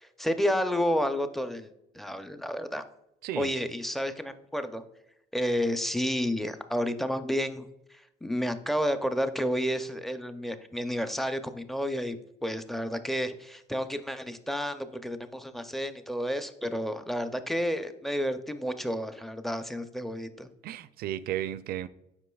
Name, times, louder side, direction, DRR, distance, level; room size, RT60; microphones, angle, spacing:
voice 1, 0.0-1.7 1.9-2.8 3.4-4.8 5.3-7.7 8.2-20.5, equal, ahead, 9 dB, 0.5 m, -30 dB
voice 2, 3.2-3.5 20.6-21.9, right 12 dB, 65° right, 15 dB, 0.4 m, -34 dB
8.1 x 5.3 x 2.3 m, 0.83 s
cardioid pair, 110°, 17 cm